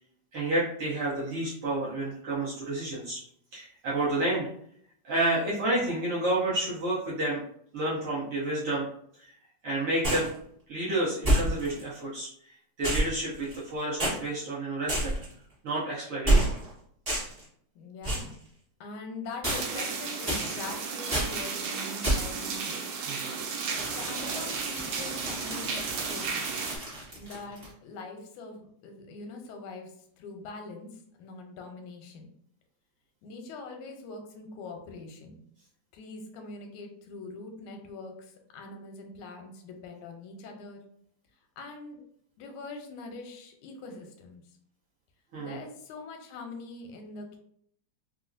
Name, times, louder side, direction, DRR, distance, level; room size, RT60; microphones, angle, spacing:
voice 1, 0.3-3.2 3.5-4.5 5.0-7.4 7.7-8.9 9.2-9.3 9.6-10.3 10.7-15.1 15.6-16.5 23.0-23.4 45.3-45.6, right 1 dB, 65° right, -7 dB, 1.5 m, -30 dB
sound 1, 10.0-10.3 11.2-11.8 12.8-13.7 14.0-14.2 14.9-15.3 16.2-16.7 17.0-17.4 18.0-18.3 19.4-19.9 20.3-20.7 21.1-21.4 22.0-22.4 23.7-27.7, right 1 dB, 35° right, 0.5 m, -29 dB
voice 2, 17.8-18.4 18.8-22.8 23.9-26.7 27.1-32.3 33.2-35.4 35.9-40.8 41.6-42.0 42.4-44.4 45.4-47.4, left 3 dB, 85° left, 3 dB, 2.0 m, -43 dB
sound 2, 19.5-26.8, right 5 dB, 90° right, 2.1 m, -34 dB
4.8 x 2.1 x 2.5 m, 0.66 s
omnidirectional pair, 3.3 m